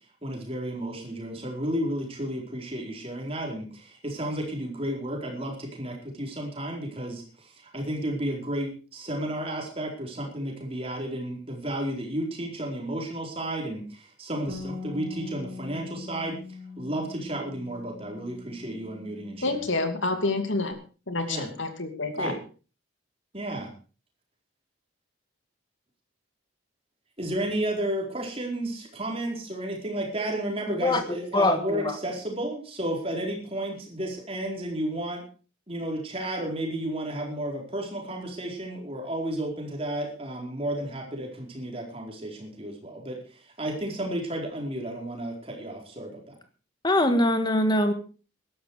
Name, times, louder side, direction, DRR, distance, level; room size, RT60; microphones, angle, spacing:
voice 1, 0.2-16.4 16.8-19.7 21.3-21.5 22.1-22.4 23.3-23.7 27.2-35.2 35.7-46.3, right 1 dB, 30° right, 1 dB, 4.5 m, -32 dB
Bass guitar, 14.5-20.7, left 4 dB, 50° right, 4.2 m, -42 dB
voice 2, 19.4-20.7 21.1-22.3, left 2 dB, 65° left, 7 dB, 2.7 m, -28 dB
voice 3, 30.8-32.0 46.8-47.9, left 1 dB, 20° left, 8 dB, 1.8 m, -23 dB
16.0 x 12.5 x 4.9 m, 0.36 s
head